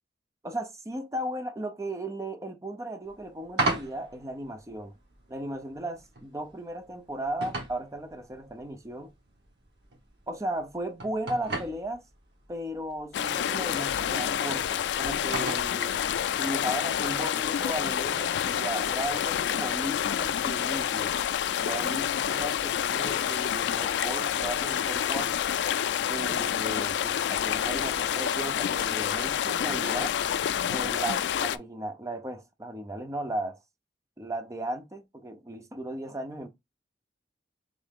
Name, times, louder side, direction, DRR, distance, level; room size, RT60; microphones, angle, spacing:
voice 1, 0.4-4.9 5.3-9.1 10.3-12.0 12.5-16.0 16.3-21.1 21.6-25.4 26.1-30.2 30.7-33.6 34.2-36.5, right 1 dB, 20° right, 0.5 m, -36 dB
sound 1, 3.0-19.3, right 2 dB, 75° right, 1.5 m, -40 dB
sound 2, 13.1-31.6, left 9 dB, 80° left, 0.3 m, -28 dB
3.7 x 3.2 x 3.5 m
head